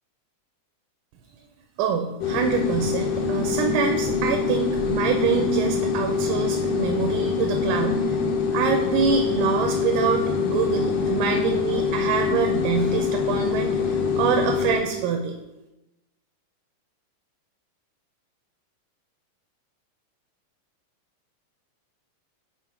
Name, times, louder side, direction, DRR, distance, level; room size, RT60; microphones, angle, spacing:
voice 1, 1.8-8.2 8.5-15.4, right 6 dB, 85° right, 4 dB, 2.0 m, -25 dB
sound 1, 2.2-14.9, left 5 dB, 85° left, 2.2 m, -24 dB
5.6 x 3.8 x 4.7 m, 0.98 s
omnidirectional pair, 3.5 m